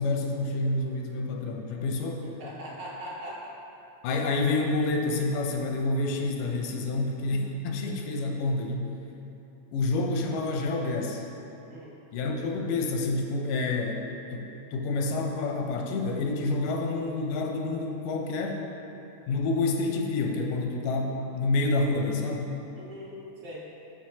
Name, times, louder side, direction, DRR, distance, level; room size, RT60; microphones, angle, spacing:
voice 1, 0.0-2.2 4.0-8.9 9.7-11.2 12.1-14.0 14.3-18.6 19.3-22.5, left 2 dB, 85° left, 2 dB, 2.2 m, -28 dB
voice 2, 2.2-3.5 11.7-12.0 22.7-23.7, equal, 75° right, -7 dB, 2.0 m, -41 dB
7.8 x 6.2 x 2.8 m, 2.8 s
omnidirectional pair, 3.6 m